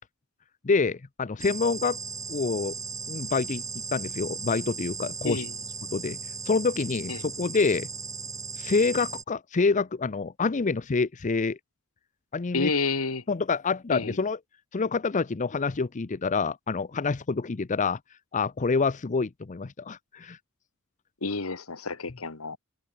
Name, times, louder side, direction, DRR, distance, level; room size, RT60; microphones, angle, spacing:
voice 1, 0.6-2.0 2.3-2.7 3.1-3.6 3.9-5.4 5.9-6.2 6.5-7.9 8.6-11.6 12.3-12.7 13.3-14.4 14.7-18.0 18.3-20.4, left 4 dB, 35° left, 0.6 m, -27 dB
sound 1, 1.4-9.2, right 5 dB, 15° right, 1.0 m, -37 dB
voice 2, 12.5-13.2 13.9-14.2 21.2-22.6, left 3 dB, 80° left, 1.8 m, -29 dB
head